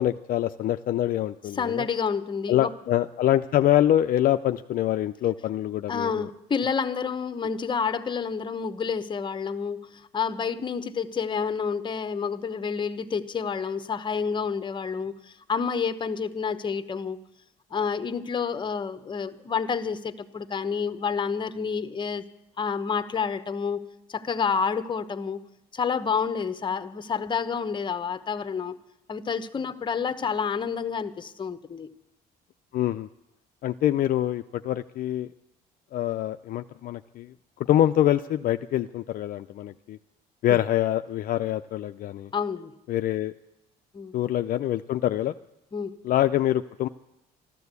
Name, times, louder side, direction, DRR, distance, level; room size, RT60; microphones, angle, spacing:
voice 1, 0.0-1.9 2.5-6.3 32.7-33.1 33.6-35.3 35.9-37.3 37.7-40.0 40.4-42.3 42.9-43.3 44.1-45.3 46.0-46.9, left 12 dB, 55° left, 9 dB, 0.5 m, -25 dB
voice 2, 1.5-2.7 5.9-17.2 17.7-22.2 22.6-23.8 24.1-25.4 25.7-28.8 29.1-31.9 40.5-40.6 42.3-42.7 43.9-44.1 45.7-46.0, left 6 dB, 30° left, 11 dB, 0.9 m, -29 dB
13.5 x 12.5 x 8.2 m, 0.87 s
cardioid pair, 110°, 17 cm